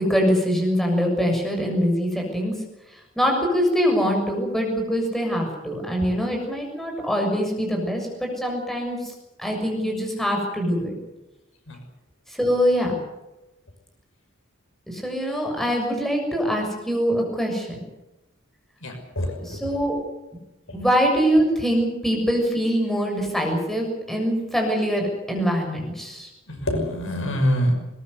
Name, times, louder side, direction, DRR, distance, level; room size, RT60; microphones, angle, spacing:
voice 1, 0.0-2.5 2.9-9.1 9.4-10.9 12.4-12.9 14.9-17.8 19.5-20.0 20.7-26.3, equal, ahead, 1 dB, 6.8 m, -23 dB
voice 2, 18.8-19.7 26.5-27.7, equal, 65° left, 4 dB, 6.0 m, -25 dB
21.0 x 21.0 x 8.1 m, 0.98 s
head